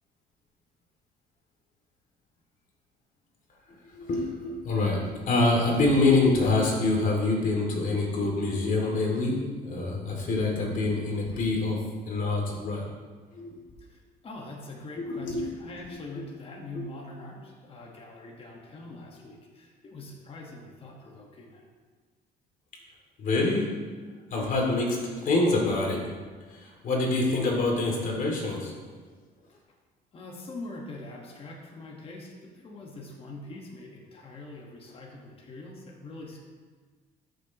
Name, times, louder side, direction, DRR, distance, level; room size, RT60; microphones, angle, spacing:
voice 1, 3.9-12.8 13.3-13.5 15.0-15.6 16.7-16.9 23.2-23.7 24.3-26.1 26.5-28.7, left 2 dB, 55° left, -1 dB, 2.5 m, -26 dB
voice 2, 13.8-21.6 30.1-36.4, left 2 dB, 35° left, -1 dB, 1.5 m, -43 dB
13.0 x 6.6 x 3.0 m, 1.5 s
cardioid pair, 110°, 17 cm